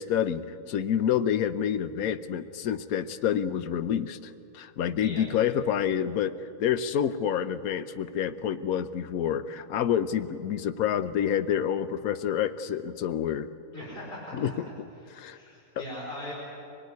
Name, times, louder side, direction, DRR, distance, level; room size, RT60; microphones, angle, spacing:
voice 1, 0.0-13.5 14.3-14.5 15.1-15.4 15.8-15.9, left 9 dB, 75° left, 11 dB, 1.2 m, -28 dB
voice 2, 13.7-14.7 15.3-16.3, left 1 dB, 35° left, -5 dB, 5.2 m, -40 dB
24.0 x 19.5 x 9.5 m, 2.6 s
omnidirectional pair, 1.6 m